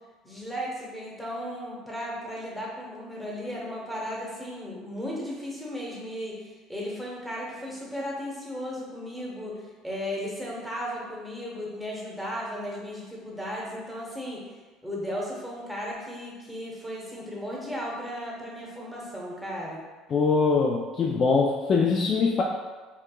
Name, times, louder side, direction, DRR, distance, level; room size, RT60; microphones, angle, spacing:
voice 1, 0.2-6.4 6.7-14.4 14.8-19.8, equal, ahead, -4 dB, 1.0 m, -35 dB
voice 2, 20.1-22.4, left 4 dB, 40° left, -1 dB, 0.3 m, -23 dB
4.6 x 2.3 x 2.3 m, 1.3 s
supercardioid pair, 105°, 0 cm